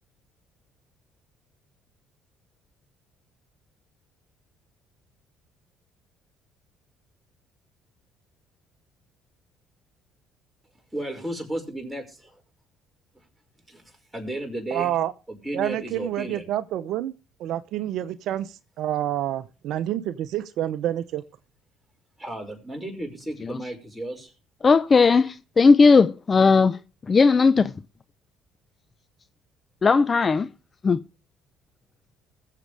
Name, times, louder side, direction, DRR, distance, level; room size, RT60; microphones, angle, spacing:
voice 1, 10.9-12.4 13.7-13.8 14.1-15.0 15.3-16.5 22.2-24.3, right 1 dB, 5° right, 5.4 m, -33 dB
voice 2, 14.7-15.1 15.5-17.1 17.4-21.2, right 12 dB, 65° right, 0.7 m, -28 dB
voice 3, 24.6-26.8 27.1-27.7 29.8-30.5 30.8-31.0, left 4 dB, 35° left, 0.5 m, -17 dB
21.0 x 7.6 x 3.3 m
hypercardioid pair, 60°, 0 cm